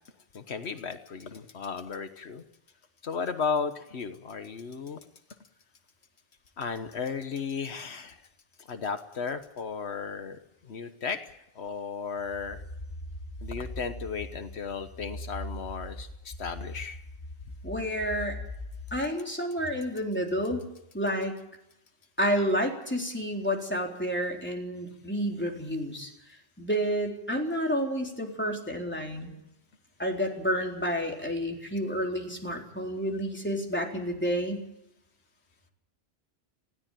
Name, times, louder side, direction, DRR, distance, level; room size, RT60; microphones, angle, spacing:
voice 1, 0.3-2.4 3.0-5.0 6.6-8.3 8.6-12.6 13.4-17.0, left 5 dB, 85° left, 9 dB, 1.5 m, -35 dB
sound 1, 12.2-19.0, left 1 dB, 45° left, 1.6 m, -41 dB
voice 2, 17.6-18.4 18.9-20.6 20.9-21.3 22.2-26.1 26.6-29.4 30.0-34.6, equal, 10° left, 0 dB, 3.9 m, -30 dB
20.0 x 16.5 x 9.1 m, 0.84 s
omnidirectional pair, 1.1 m